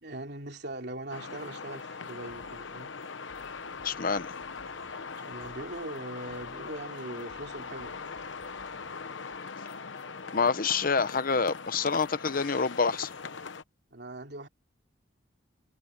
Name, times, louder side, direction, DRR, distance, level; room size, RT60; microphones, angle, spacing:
voice 1, 0.0-3.0 4.8-8.0 13.9-14.5, right 1 dB, 60° right, 3.2 m, -41 dB
sound 1, 1.1-13.6, left 5 dB, 80° left, 1.1 m, -41 dB
Drum kit, 1.5-1.7 2.2-9.4, equal, 25° left, 6.1 m, -60 dB
voice 2, 3.8-4.3 10.3-13.1, left 5 dB, 50° left, 0.9 m, -27 dB
head